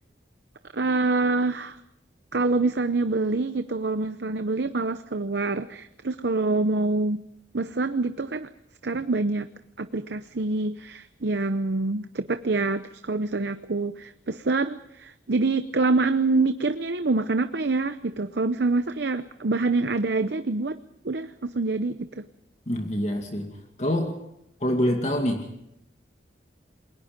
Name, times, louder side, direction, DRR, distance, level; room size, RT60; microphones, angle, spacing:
voice 1, 0.7-1.8 2.3-7.3 7.5-8.5 8.8-9.5 9.8-20.8 21.0-22.2, right 3 dB, 65° right, 10 dB, 0.8 m, -26 dB
voice 2, 22.7-23.5 23.8-24.2 24.6-25.5, equal, 35° left, 3 dB, 2.3 m, -25 dB
28.5 x 22.0 x 5.3 m, 0.81 s
head